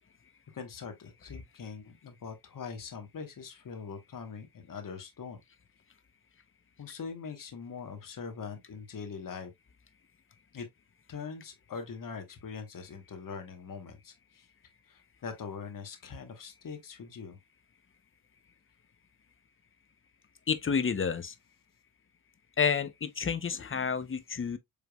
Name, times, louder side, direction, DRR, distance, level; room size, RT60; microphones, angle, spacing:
voice 1, 0.5-5.4 6.8-9.5 10.5-10.7 11.1-14.4 14.9-17.4, left 5 dB, 45° left, 1.2 m, -42 dB
voice 2, 20.5-21.3 22.6-24.6, left 6 dB, 25° left, 0.7 m, -30 dB
5.0 x 3.3 x 2.3 m
cardioid pair, 70°, 46 cm